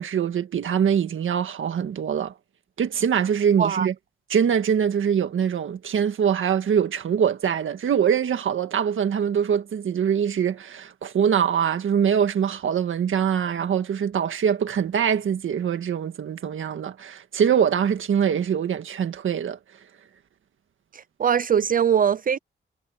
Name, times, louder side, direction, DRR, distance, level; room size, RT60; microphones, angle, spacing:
voice 1, 0.0-2.3 2.8-3.9 4.3-19.6, right 8 dB, 75° right, 1.7 m, -23 dB
voice 2, 20.9-22.4, right 8 dB, 45° right, 0.4 m, -21 dB
wide cardioid pair, 160°, 20 cm